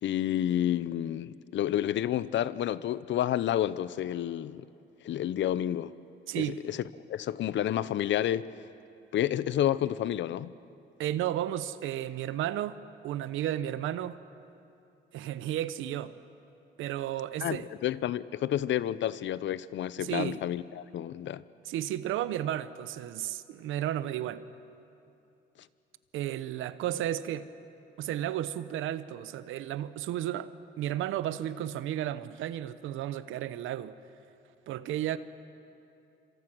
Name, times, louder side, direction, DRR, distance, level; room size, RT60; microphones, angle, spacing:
voice 1, 0.0-4.7 5.0-5.9 6.3-6.8 7.1-8.5 9.1-10.5 17.4-21.4, left 11 dB, 70° left, 0.7 m, -30 dB
voice 2, 6.3-6.6 11.0-14.2 15.1-16.1 16.8-17.7 20.0-20.4 21.6-24.4 26.1-27.5 28.0-33.9 34.7-35.2, right 12 dB, 90° right, 0.9 m, -33 dB
26.5 x 26.0 x 6.2 m
cardioid pair, 90°, 20 cm